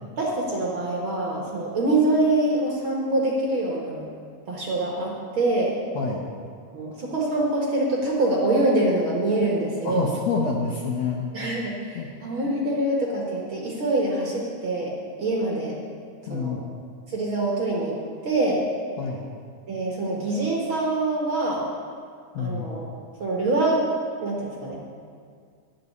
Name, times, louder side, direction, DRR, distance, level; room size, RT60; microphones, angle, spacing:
voice 1, 0.2-4.1 4.5-5.7 6.7-10.1 11.3-15.8 16.3-16.6 17.1-18.0 18.2-18.6 19.7-21.6 22.4-22.9 23.2-23.8 24.2-24.8, right 2 dB, 50° right, -3 dB, 1.8 m, -25 dB
voice 2, 6.0-6.3 9.8-11.5 12.0-12.1 16.3-16.6 19.0-19.3 22.3-22.6, left 4 dB, 65° left, 0 dB, 1.9 m, -27 dB
11.5 x 7.4 x 9.5 m, 2.2 s
omnidirectional pair, 3.9 m